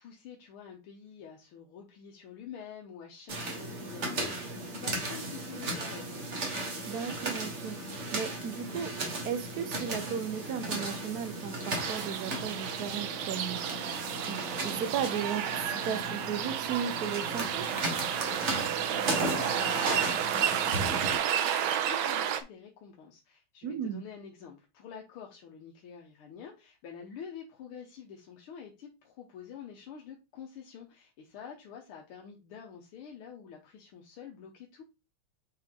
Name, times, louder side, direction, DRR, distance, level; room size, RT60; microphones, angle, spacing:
voice 1, 0.0-6.3 19.1-34.8, left 7 dB, 90° left, 1.9 m, -47 dB
sound 1, 3.3-21.1, right 1 dB, 35° right, 1.5 m, -36 dB
voice 2, 6.9-7.8 8.1-8.9 9.2-13.6 14.3-17.7 23.6-24.0, right 8 dB, 60° right, 1.2 m, -35 dB
sound 2, 11.7-22.4, right 10 dB, 80° right, 1.5 m, -32 dB
6.4 x 4.4 x 3.7 m
omnidirectional pair, 2.3 m